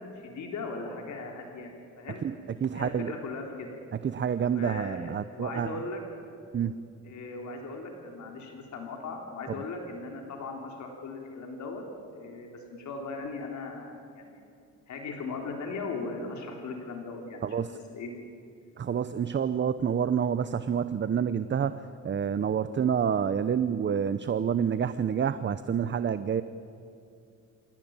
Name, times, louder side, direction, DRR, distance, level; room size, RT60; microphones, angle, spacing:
voice 1, 0.2-1.7 2.0-2.2 2.7-3.8 4.5-6.0 7.0-11.8 12.1-14.4 14.9-18.1, left 3 dB, 70° left, 2 dB, 3.7 m, -38 dB
voice 2, 2.6-3.1 4.0-5.8 6.5-6.8 17.4-17.8 18.8-26.4, right 7 dB, 40° right, 13 dB, 0.8 m, -28 dB
27.0 x 16.5 x 8.9 m, 2.6 s
cardioid pair, 90°, 30 cm